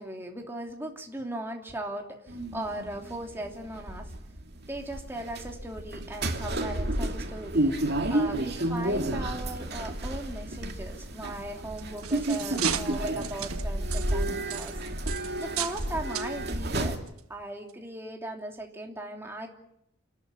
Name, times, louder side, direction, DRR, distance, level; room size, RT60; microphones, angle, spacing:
voice 1, 0.0-4.1 4.7-14.7 15.4-17.0 17.3-19.5, right 1 dB, 10° right, 1 dB, 3.0 m, -38 dB
sound 1, 2.3-17.0, right 1 dB, 50° right, 2.6 m, -31 dB
sound 2, 11.6-15.9 16.1-16.3 17.1-17.2 17.7-17.8, right 9 dB, 85° right, 1.4 m, -35 dB
29.5 x 13.5 x 9.6 m, 0.77 s
head